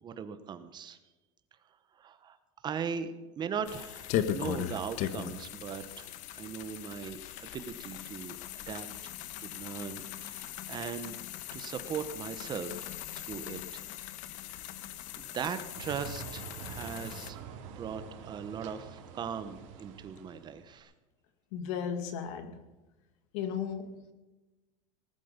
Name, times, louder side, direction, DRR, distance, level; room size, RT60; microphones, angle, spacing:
voice 1, 0.0-1.0 1.9-2.4 2.6-9.1 9.4-11.2 11.5-13.8 14.5-14.6 15.2-20.9, right 7 dB, 25° right, 11 dB, 1.1 m, -39 dB
sound 1, 3.6-17.3, left 11 dB, 50° left, 1.2 m, -39 dB
sound 2, 15.7-20.7, right 7 dB, 70° right, 3.1 m, -46 dB
voice 2, 21.5-22.6 23.3-24.1, left 7 dB, 65° left, 9 dB, 2.2 m, -35 dB
19.0 x 12.0 x 5.3 m, 1.1 s
supercardioid pair, 150°, 17 cm